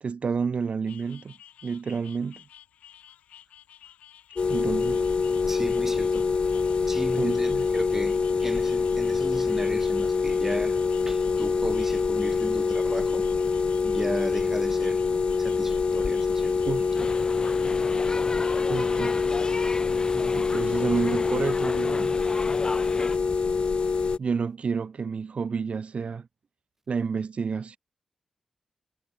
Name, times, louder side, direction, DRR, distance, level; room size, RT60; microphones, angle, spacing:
voice 1, 0.0-1.4 1.6-2.4 4.5-5.1 7.2-7.7 16.7-17.1 18.7-19.2 20.3-22.2 24.2-26.3 26.9-27.8, right 5 dB, 60° right, 2.0 m, -30 dB
sound 1, 0.9-19.8, left 10 dB, 90° left, 7.7 m, -53 dB
sound 2, 4.4-24.2, left 5 dB, 50° left, 0.3 m, -25 dB
voice 2, 5.5-6.2 6.9-13.3 13.8-15.0 15.4-16.7 20.0-20.4, right 1 dB, 15° right, 4.8 m, -35 dB
sound 3, 16.9-23.2, left 3 dB, 35° left, 1.0 m, -35 dB
supercardioid pair, 45°, 2 cm